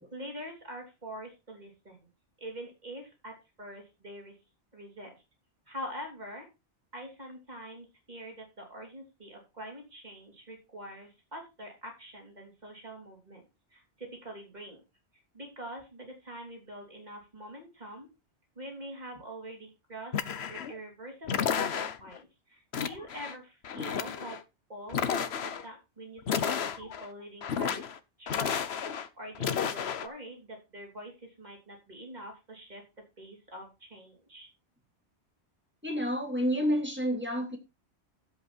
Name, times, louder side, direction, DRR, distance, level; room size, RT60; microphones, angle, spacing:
voice 1, 0.1-2.1 2.4-4.4 4.7-5.2 5.7-6.5 6.9-13.4 13.7-14.8 15.3-18.1 18.6-20.2 20.5-24.4 24.7-27.9 28.2-32.8 33.2-34.5, equal, 40° right, 3.7 m, -45 dB
sound 1, 20.1-20.8 21.3-22.2 22.7-23.4 23.6-24.4 24.9-25.7 26.2-27.1 27.4-28.0 28.3-29.1 29.4-30.1, left 7 dB, 65° left, 1.1 m, -32 dB
voice 2, 35.8-37.6, equal, 10° right, 2.6 m, -29 dB
11.5 x 8.1 x 4.3 m
omnidirectional pair, 1.2 m